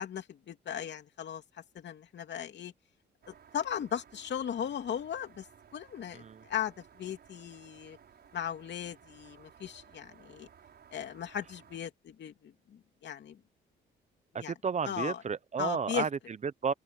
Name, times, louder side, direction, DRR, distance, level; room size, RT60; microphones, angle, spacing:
voice 1, 0.0-1.4 1.7-2.7 3.3-5.4 5.7-8.0 8.3-10.5 10.9-13.4 14.4-14.5 14.8-15.2 15.6-16.1, left 9 dB, 60° left, 3.0 m, -37 dB
sound 1, 3.2-11.8, right 8 dB, 55° right, 6.9 m, -58 dB
voice 2, 6.1-6.4 14.3-16.7, right 6 dB, 35° right, 0.8 m, -33 dB
open air
cardioid pair, 90°, 20 cm